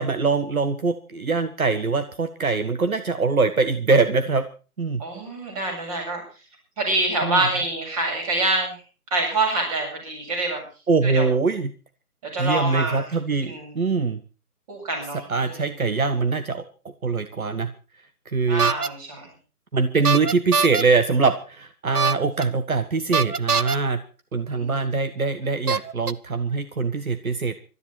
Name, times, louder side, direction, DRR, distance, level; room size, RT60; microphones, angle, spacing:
voice 1, 0.0-4.4 4.8-5.0 7.2-7.4 10.9-11.7 12.4-14.2 15.3-16.6 17.0-17.7 18.2-18.7 19.7-24.0 24.3-27.6, right 4 dB, 65° right, 9 dB, 1.7 m, -23 dB
voice 2, 5.0-6.2 6.8-8.8 9.1-10.6 11.0-11.3 12.3-13.2 13.5-13.8 14.7-15.7 18.5-19.3 24.5-25.2, right 2 dB, 25° right, 2 dB, 7.7 m, -26 dB
sound 1, 18.6-18.9 20.0-20.8 21.9-22.4 23.1-23.8 24.8-24.9 25.7-26.1, right 5 dB, 85° right, 1.1 m, -22 dB
21.5 x 13.5 x 4.5 m, 0.36 s
figure-of-eight pair, 155°, 45 cm